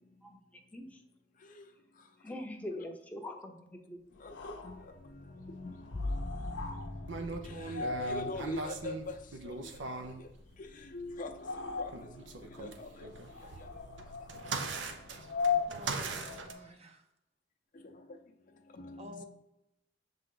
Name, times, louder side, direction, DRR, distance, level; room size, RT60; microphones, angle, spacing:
voice 1, 2.2-4.0, left 1 dB, 10° left, 0.7 m, -42 dB
sound 1, 4.1-16.7, left 5 dB, 85° left, 0.6 m, -40 dB
voice 2, 4.2-9.2 9.4-9.8 10.2-10.3 10.6-13.1 13.6-13.8 17.7-18.2 18.7-19.2, left 2 dB, 45° left, 0.5 m, -45 dB
sound 2, 5.9-11.3 11.8-12.4, left 2 dB, 70° right, 2.1 m, -43 dB
sound 3, 7.1-10.2 11.9-16.5, right 3 dB, 90° right, 0.7 m, -40 dB
voice 3, 15.7-17.1 19.0-19.2, equal, 35° right, 0.6 m, -50 dB
6.9 x 3.7 x 3.8 m
head